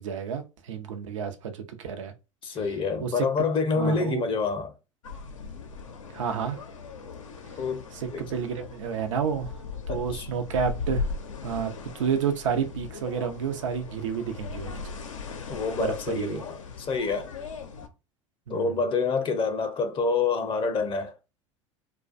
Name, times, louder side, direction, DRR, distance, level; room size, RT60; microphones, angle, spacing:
voice 1, 0.0-2.1 3.0-3.3 3.7-4.2 6.1-6.6 7.5-7.6 7.9-9.5 9.9-11.1 11.4-14.9 15.7-16.4 18.5-18.8, right 7 dB, 75° right, 0.6 m, -30 dB
voice 2, 2.4-4.7 7.6-7.8 8.1-8.3 9.9-10.3 15.5-17.3 18.5-21.2, left 4 dB, 30° left, 0.5 m, -27 dB
sound 1, 5.0-17.9, left 4 dB, 90° left, 0.5 m, -38 dB
2.4 x 2.1 x 2.4 m
hypercardioid pair, 80°, 16 cm